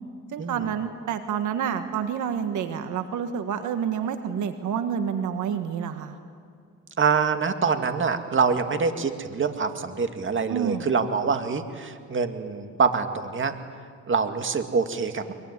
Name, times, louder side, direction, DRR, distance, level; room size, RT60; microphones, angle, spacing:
voice 1, 0.3-6.2 10.5-10.8, right 8 dB, 80° right, 8 dB, 1.6 m, -28 dB
voice 2, 7.0-13.5 14.1-15.3, right 5 dB, 40° right, 7 dB, 2.1 m, -25 dB
23.0 x 23.0 x 9.8 m, 2.2 s
cardioid pair, 90°, 30 cm